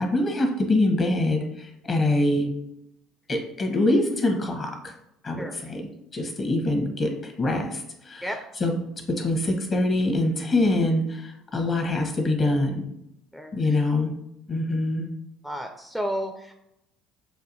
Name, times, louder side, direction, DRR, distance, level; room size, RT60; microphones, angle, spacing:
voice 1, 0.0-2.5 3.3-4.9 5.2-8.3 8.6-8.8 9.1-12.9 13.5-14.1 14.5-15.1, left 2 dB, 40° left, 3 dB, 1.0 m, -24 dB
voice 2, 15.4-16.5, equal, ahead, 4 dB, 0.4 m, -31 dB
6.7 x 2.6 x 2.6 m, 0.81 s
figure-of-eight pair, 60°, 0 cm